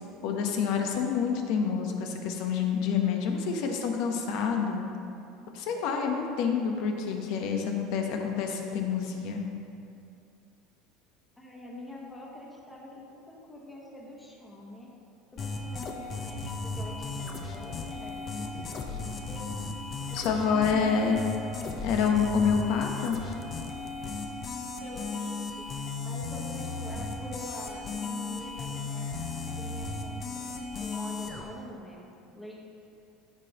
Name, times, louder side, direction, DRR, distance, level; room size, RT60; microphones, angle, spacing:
voice 1, 0.2-4.9 5.5-9.4 20.1-21.2 21.8-23.2, left 6 dB, 65° left, 3 dB, 1.0 m, -27 dB
voice 2, 11.4-14.9 15.4-19.4 20.1-21.3 24.8-30.2 30.8-32.6, left 1 dB, 10° left, -3 dB, 1.3 m, -45 dB
sound 1, 15.4-31.4, left 3 dB, 30° left, 0.8 m, -36 dB
13.5 x 5.1 x 2.9 m, 2.6 s
cardioid pair, 145°, 0 cm